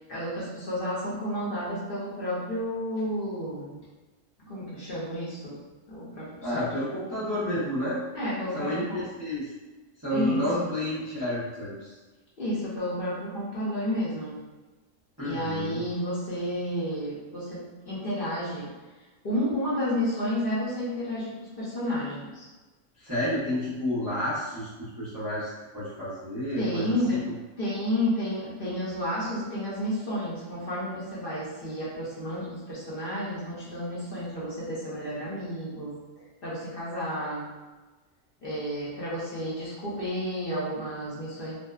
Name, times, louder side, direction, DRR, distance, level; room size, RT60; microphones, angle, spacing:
voice 1, 0.1-3.8 4.4-5.6 5.9-6.6 8.1-9.0 10.1-10.7 12.4-14.4 15.2-18.7 19.2-22.4 26.6-27.2 27.6-36.0 36.4-37.5 38.4-41.6, equal, 50° left, -8 dB, 0.8 m, -31 dB
voice 2, 6.4-8.0 8.5-9.5 10.0-11.9 15.2-15.8 23.0-26.9, left 1 dB, 20° right, -11 dB, 0.5 m, -30 dB
2.5 x 2.2 x 2.3 m, 1.2 s
omnidirectional pair, 1.3 m